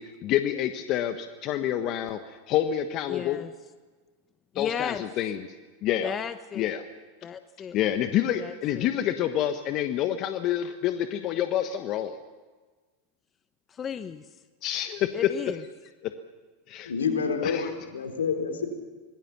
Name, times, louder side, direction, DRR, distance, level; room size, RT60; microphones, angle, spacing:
voice 1, 0.0-3.4 4.5-5.5 5.8-6.1 6.5-6.9 7.7-12.2 14.6-15.1 16.0-16.1 16.7-16.9 17.4-17.7, left 11 dB, 45° left, 8 dB, 1.3 m, -28 dB
voice 2, 3.1-3.5 4.5-5.0 6.0-6.7 7.2-7.8 8.4-8.9 13.7-14.2 15.1-15.6, left 7 dB, 30° left, 11 dB, 0.9 m, -34 dB
voice 3, 16.9-18.7, left 5 dB, 85° left, 4 dB, 3.9 m, -28 dB
26.0 x 20.0 x 6.0 m, 1.3 s
hypercardioid pair, 95°, 0 cm